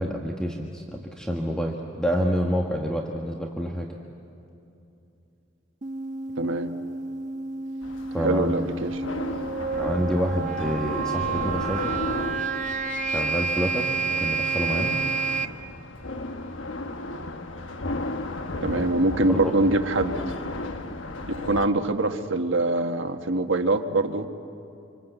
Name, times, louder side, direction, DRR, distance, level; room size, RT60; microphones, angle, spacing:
voice 1, 0.0-3.9 8.1-8.6 9.8-12.0 13.0-15.0 18.7-18.8 19.3-19.5 20.2-20.3, equal, 5° left, 0 dB, 1.5 m, -28 dB
sound 1, 5.8-15.4, right 5 dB, 40° right, 1.0 m, -29 dB
voice 2, 6.4-6.7 8.2-9.0 18.6-20.2 21.4-24.3, right 2 dB, 75° right, 6 dB, 1.4 m, -24 dB
sound 2, 7.8-21.7, left 2 dB, 70° left, 1.2 m, -35 dB
27.0 x 26.0 x 8.1 m, 2.7 s
head